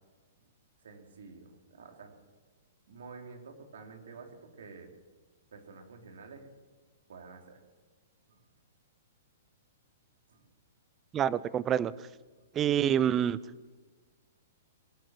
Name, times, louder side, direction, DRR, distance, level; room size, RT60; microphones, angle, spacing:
voice 1, 0.8-2.2 2.9-4.9 5.5-6.5 7.1-7.6 8.3-8.4 10.3-10.4 12.3-12.5, right 4 dB, 80° right, 2 dB, 3.4 m, -50 dB
voice 2, 11.1-11.9 12.5-13.4, right 9 dB, 15° right, 19 dB, 0.4 m, -27 dB
22.5 x 7.9 x 7.5 m, 1.3 s
hypercardioid pair, 165°, 0 cm